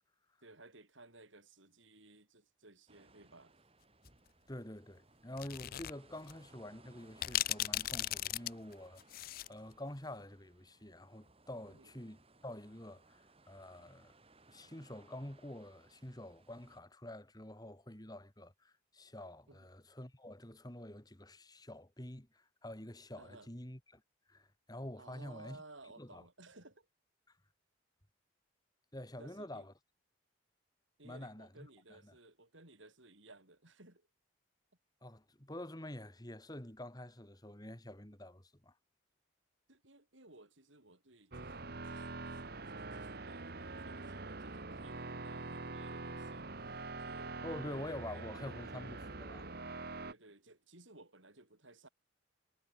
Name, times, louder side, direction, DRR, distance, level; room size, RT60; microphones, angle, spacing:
voice 1, 0.4-3.6 11.7-11.9 19.5-19.7 23.2-23.5 25.0-26.9 29.2-29.7 31.0-34.1 39.7-46.5 47.0-47.4 47.8-47.9 48.1-48.3 50.1-51.9, right 2 dB, 70° right, 6.2 m, -58 dB
sound 1, 2.9-16.8, right 2 dB, 30° right, 4.4 m, -64 dB
voice 2, 4.5-14.1 14.5-24.0 24.3-25.6 26.0-26.2 28.9-29.7 31.0-32.1 35.0-38.7 47.4-49.5, left 1 dB, 20° left, 2.5 m, -48 dB
sound 2, 5.4-5.9 6.3-6.4 7.2-9.5, left 14 dB, 45° left, 0.4 m, -36 dB
sound 3, 41.3-50.1, right 3 dB, 50° right, 1.6 m, -44 dB
head